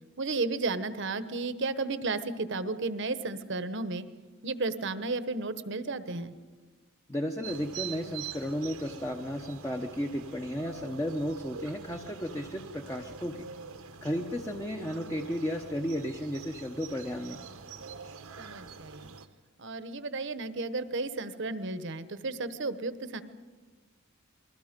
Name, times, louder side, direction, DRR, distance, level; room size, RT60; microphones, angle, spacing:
voice 1, 0.2-4.1 4.4-6.3 18.4-19.1 19.6-23.2, right 3 dB, 55° right, 12 dB, 1.0 m, -33 dB
voice 2, 7.1-13.4 14.0-17.4, equal, 15° left, 3 dB, 0.9 m, -34 dB
sound 1, 7.4-19.3, right 6 dB, 80° right, 1.2 m, -45 dB
29.0 x 21.5 x 5.2 m, 1.4 s
head